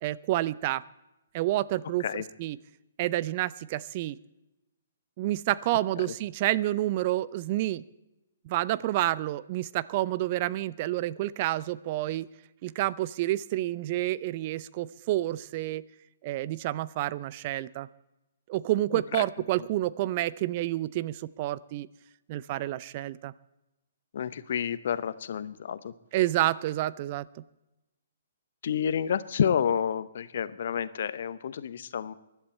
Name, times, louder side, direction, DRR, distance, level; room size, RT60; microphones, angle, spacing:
voice 1, 0.0-0.8 1.3-2.1 2.4-2.6 3.0-4.2 5.2-7.8 8.5-12.3 12.6-15.8 16.2-17.9 18.5-21.9 22.3-23.3 26.1-27.3, right 15 dB, 35° right, 18 dB, 0.5 m, -29 dB
voice 2, 18.9-19.2 19.6-19.7 24.1-25.9 28.6-32.1, left 8 dB, 55° left, 15 dB, 0.8 m, -30 dB
22.5 x 11.5 x 4.3 m, 0.96 s
figure-of-eight pair, 125°, 0 cm